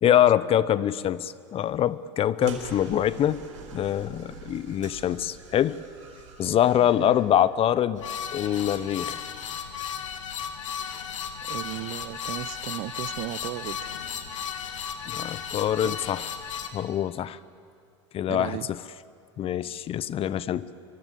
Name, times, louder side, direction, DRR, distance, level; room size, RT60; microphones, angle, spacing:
voice 1, 0.0-3.4 3.7-5.8 6.4-8.0 8.3-9.2 15.1-16.2 16.7-17.4 18.1-18.6 19.4-20.7, left 11 dB, 35° left, 18 dB, 0.8 m, -24 dB
sound 1, 2.4-7.5, right 5 dB, 85° right, 4.7 m, -43 dB
voice 2, 6.8-7.2 11.5-13.9 15.8-16.0 18.3-18.7, right 18 dB, 55° right, 19 dB, 0.7 m, -35 dB
sound 2, 8.0-16.7, left 7 dB, 90° left, 2.0 m, -35 dB
24.5 x 24.0 x 8.4 m, 2.4 s
hypercardioid pair, 95°, 16 cm